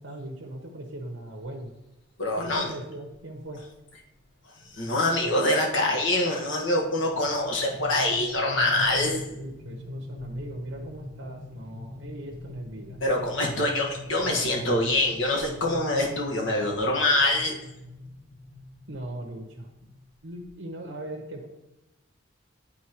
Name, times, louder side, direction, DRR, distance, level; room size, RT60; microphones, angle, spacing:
voice 1, 0.0-1.7 2.4-3.6 7.9-13.0 18.9-19.7 20.2-21.5, right 1 dB, 75° right, -1 dB, 1.0 m, -39 dB
sound 1, 1.4-1.6 2.5-2.6 3.0-3.1 3.4-3.7 4.1-20.5, left 2 dB, 50° left, 1.1 m, -43 dB
voice 2, 2.2-2.7 4.7-9.2 13.0-17.5, left 1 dB, 70° left, 0 dB, 1.3 m, -25 dB
10.0 x 4.0 x 3.0 m, 0.93 s
head